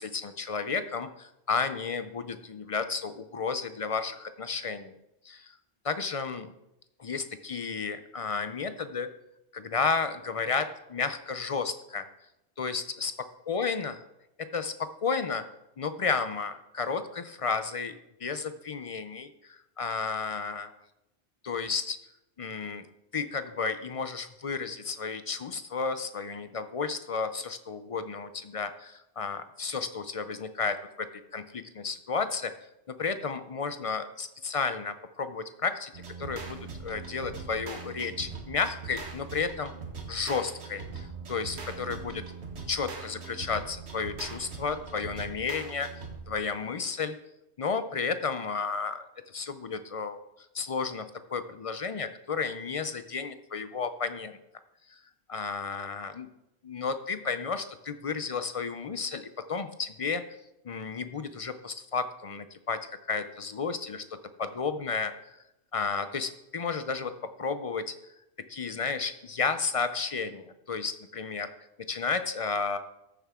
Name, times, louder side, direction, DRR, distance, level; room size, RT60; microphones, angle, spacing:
voice 1, 0.0-5.0 5.2-5.5 5.8-6.5 7.0-9.1 9.5-12.1 12.6-13.1 13.5-13.9 14.4-15.4 15.8-20.7 21.4-22.0 22.4-22.9 23.1-32.5 33.0-39.7 40.1-42.2 42.7-45.9 46.3-47.2 47.6-50.2 50.5-54.4 54.9-55.0 55.3-56.3 56.7-60.2 60.6-65.1 65.7-67.1 67.4-67.9 68.5-71.5 71.9-72.8, left 5 dB, 50° left, 10 dB, 0.4 m, -32 dB
sound 1, 35.9-46.4, right 4 dB, 70° right, 1.5 m, -41 dB
14.0 x 7.1 x 3.6 m, 0.88 s
omnidirectional pair, 1.2 m